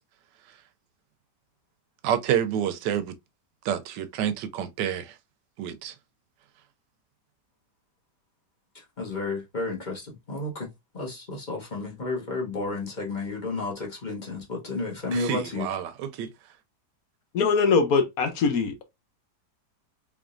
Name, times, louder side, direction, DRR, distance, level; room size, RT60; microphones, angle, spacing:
voice 1, 2.0-3.1 3.6-5.1 5.6-5.9 15.1-16.3, right 9 dB, 90° right, 1.2 m, -28 dB
voice 2, 9.0-10.7 10.9-15.7, left 3 dB, 30° left, 1.1 m, -32 dB
voice 3, 17.3-18.8, left 5 dB, 65° left, 1.1 m, -22 dB
3.7 x 3.5 x 2.5 m
omnidirectional pair, 1.8 m